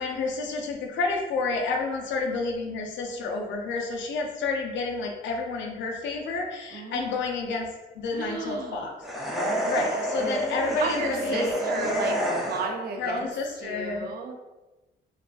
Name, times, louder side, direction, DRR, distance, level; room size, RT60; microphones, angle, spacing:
voice 1, 0.0-7.7 8.0-8.9 9.6-12.1 13.0-14.1, left 3 dB, 70° left, 1 dB, 0.5 m, -30 dB
voice 2, 6.7-7.2 8.1-9.0 10.7-12.2 12.5-13.3 13.5-14.3, right 4 dB, 50° right, 2 dB, 0.4 m, -33 dB
sound 1, 9.0-12.9, equal, ahead, 0.5 m, -28 dB
2.4 x 2.2 x 2.3 m, 1.1 s
cardioid pair, 90°, 20 cm